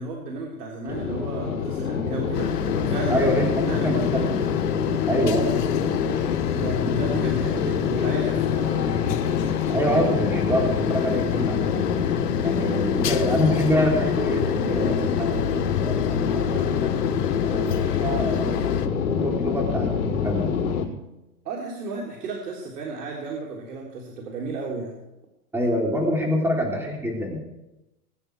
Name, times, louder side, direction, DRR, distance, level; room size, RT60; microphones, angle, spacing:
voice 1, 0.0-3.3 3.6-4.3 6.5-9.0 21.5-25.0, right 3 dB, 75° right, -2 dB, 3.7 m, -33 dB
sound 1, 0.9-20.8, left 7 dB, 65° left, 4.9 m, -25 dB
sound 2, 2.3-18.9, left 9 dB, 85° left, 1.5 m, -31 dB
voice 2, 3.1-4.2 5.1-5.9 9.7-11.7 12.4-16.9 17.4-20.5 25.5-27.4, equal, 5° right, -1 dB, 3.5 m, -26 dB
22.0 x 10.0 x 4.8 m, 0.95 s
hypercardioid pair, 145°, 46 cm